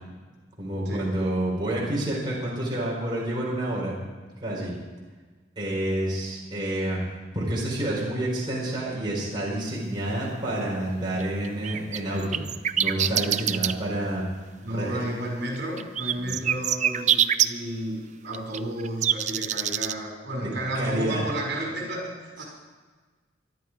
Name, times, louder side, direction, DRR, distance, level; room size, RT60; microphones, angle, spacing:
voice 1, 0.6-3.9 4.4-4.7 5.6-7.0 7.3-12.4 12.8-14.2 14.7-15.0 16.2-16.3 20.4-20.5 20.7-21.2, right 1 dB, 25° right, -5 dB, 4.6 m, -28 dB
sound 1, 11.2-13.7 15.8-17.5 18.3-19.9, right 10 dB, 40° right, 0.5 m, -24 dB
voice 2, 14.6-22.4, right 1 dB, 65° right, -1 dB, 5.4 m, -32 dB
22.5 x 12.0 x 4.8 m, 1.4 s
head